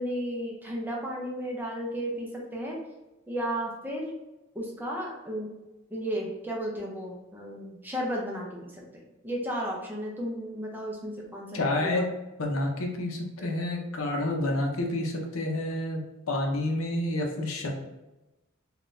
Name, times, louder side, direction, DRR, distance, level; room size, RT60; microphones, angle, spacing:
voice 1, 0.0-2.8 3.3-4.2 4.5-5.5 5.9-8.8 9.2-12.1 13.4-13.5, equal, 10° right, -2 dB, 0.5 m, -34 dB
voice 2, 11.5-12.1 12.4-17.7, left 1 dB, 80° left, 2 dB, 0.6 m, -29 dB
3.6 x 2.3 x 2.5 m, 1.0 s
head